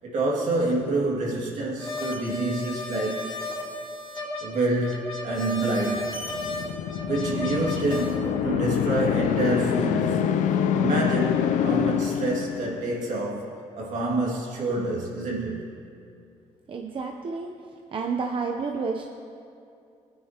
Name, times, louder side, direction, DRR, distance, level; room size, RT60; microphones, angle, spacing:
voice 1, 0.0-3.3 4.4-6.1 7.1-13.5 13.7-15.7, right 2 dB, 75° right, -3 dB, 2.3 m, -27 dB
sound 1, 1.8-8.2, left 2 dB, 45° left, 2.7 m, -34 dB
sound 2, 6.1-13.0, left 9 dB, 85° left, 0.5 m, -26 dB
voice 2, 16.7-17.5 17.9-19.1, right 4 dB, 45° right, 2 dB, 0.7 m, -30 dB
18.5 x 9.6 x 3.0 m, 2.5 s
cardioid pair, 85°, 13 cm